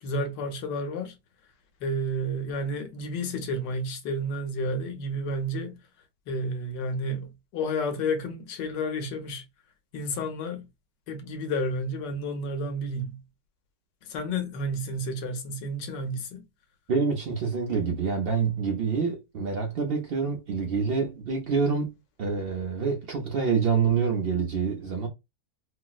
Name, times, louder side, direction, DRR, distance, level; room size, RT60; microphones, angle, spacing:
voice 1, 0.0-1.1 1.8-5.8 6.3-9.4 9.9-10.7 11.1-13.2 14.0-16.4, equal, 75° left, 1.4 m, -31 dB
voice 2, 16.9-21.9 22.2-25.1, right 5 dB, 85° right, 0.5 m, -26 dB
4.4 x 2.0 x 2.3 m
omnidirectional pair, 2.0 m